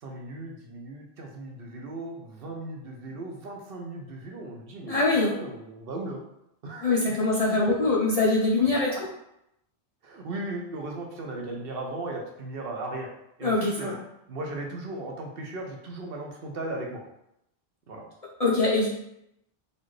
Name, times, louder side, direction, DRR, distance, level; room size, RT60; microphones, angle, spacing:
voice 1, 0.0-6.2 6.6-7.9 8.7-9.0 10.0-13.1 13.4-13.9 14.3-17.0 17.9-18.0, right 2 dB, 60° right, 1 dB, 0.8 m, -37 dB
voice 2, 4.9-5.3 6.8-8.9 13.4-13.9 18.4-18.9, left 3 dB, 45° left, -4 dB, 0.5 m, -23 dB
4.1 x 2.5 x 3.1 m, 0.80 s
omnidirectional pair, 1.1 m